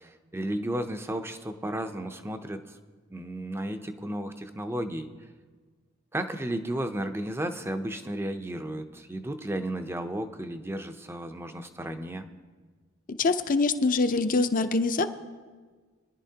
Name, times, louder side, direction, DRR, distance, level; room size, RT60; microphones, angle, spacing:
voice 1, 0.0-2.8 3.1-5.1 6.1-12.3, right 1 dB, 10° right, 8 dB, 0.6 m, -33 dB
voice 2, 13.2-15.1, left 3 dB, 40° left, 9 dB, 0.6 m, -24 dB
22.5 x 11.0 x 2.8 m, 1.5 s
head